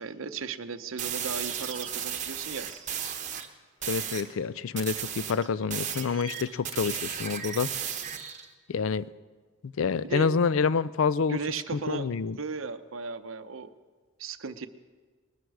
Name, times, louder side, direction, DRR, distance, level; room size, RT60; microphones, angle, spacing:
voice 1, 0.0-2.7 10.0-10.3 11.3-12.1 12.4-13.7 14.2-14.7, right 5 dB, 65° right, 11 dB, 0.7 m, -36 dB
sound 1, 1.0-3.5 3.8-4.3 4.8-8.5, right 8 dB, 35° right, 1.0 m, -35 dB
voice 2, 3.9-7.7 8.7-9.1 9.6-11.4 11.7-12.4, left 5 dB, 65° left, 17 dB, 0.4 m, -27 dB
20.5 x 12.5 x 4.8 m, 1.4 s
head